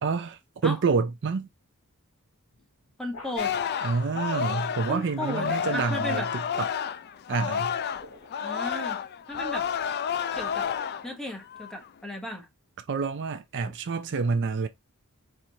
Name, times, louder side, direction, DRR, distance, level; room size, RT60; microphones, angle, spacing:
voice 1, 0.0-1.5 3.8-6.7 7.3-7.7 12.9-14.7, right 4 dB, 55° right, 0.4 m, -28 dB
sound 1, 2.5-3.7 5.7-6.3 7.7-8.5 9.3-11.3, left 3 dB, 75° left, 2.7 m, -49 dB
voice 2, 3.0-3.5 4.9-6.3 8.4-9.0 9.3-9.7 10.3-10.7 11.0-12.5, left 1 dB, 5° left, 0.8 m, -35 dB
Singing, 3.4-8.0 8.3-11.1 11.5-11.9, left 8 dB, 45° left, 0.4 m, -30 dB
4.4 x 2.5 x 2.7 m
head